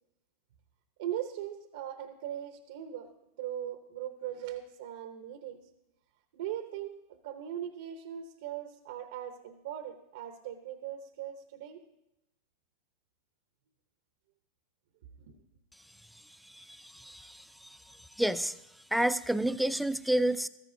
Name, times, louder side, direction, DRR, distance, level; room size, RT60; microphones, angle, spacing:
voice 1, 1.0-3.1 3.4-5.6 6.3-11.8 15.2-15.4, right 11 dB, 70° right, 8 dB, 0.8 m, -39 dB
voice 2, 16.5-17.4 18.2-18.5 18.9-20.5, right 1 dB, ahead, 13 dB, 0.4 m, -29 dB
14.0 x 14.0 x 2.7 m, 0.87 s
hypercardioid pair, 105°, 0 cm